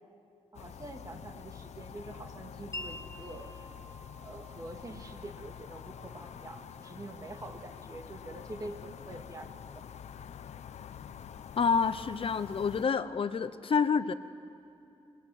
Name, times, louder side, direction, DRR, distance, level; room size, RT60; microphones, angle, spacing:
sound 1, 0.5-12.9, left 8 dB, 90° left, 0.7 m, -47 dB
voice 1, 0.5-3.6 4.2-9.9, right 2 dB, 30° right, 5 dB, 2.0 m, -46 dB
Wind chime, 2.7-10.4, left 1 dB, 25° left, 1.5 m, -50 dB
voice 2, 11.6-14.1, left 6 dB, 55° left, 12 dB, 0.7 m, -28 dB
21.5 x 21.5 x 9.9 m, 2.7 s
wide cardioid pair, 120°, 11 cm